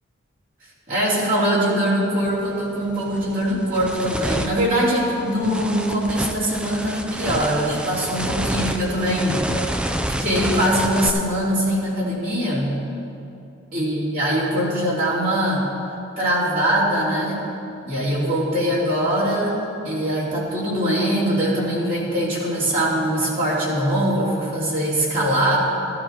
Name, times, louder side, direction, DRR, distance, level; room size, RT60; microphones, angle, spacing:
voice 1, 0.9-9.9 10.2-12.7 13.7-15.7 16.2-17.4 17.8-19.6 19.8-25.6, equal, 40° right, -7 dB, 3.1 m, -22 dB
sound 1, 2.3-2.4 2.9-11.1, right 1 dB, 5° right, 0.3 m, -28 dB
15.0 x 12.5 x 2.9 m, 2.7 s
head